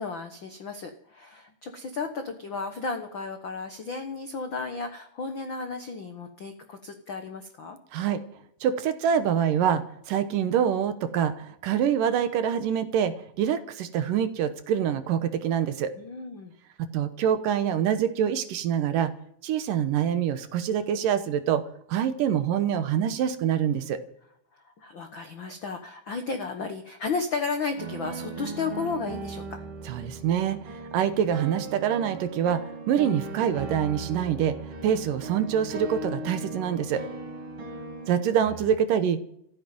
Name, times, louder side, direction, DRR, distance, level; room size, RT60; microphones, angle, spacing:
voice 1, 0.0-7.8 16.0-16.5 24.5-29.6, left 4 dB, 80° left, 6 dB, 1.1 m, -34 dB
voice 2, 7.9-8.2 8.6-15.9 16.9-19.1 19.4-21.6 21.9-24.0 29.9-34.6 34.8-37.0 38.1-39.2, right 9 dB, 70° right, 11 dB, 2.5 m, -25 dB
sound 1, 27.8-38.7, right 3 dB, 35° right, 3.3 m, -38 dB
14.5 x 10.0 x 9.3 m, 0.72 s
omnidirectional pair, 4.3 m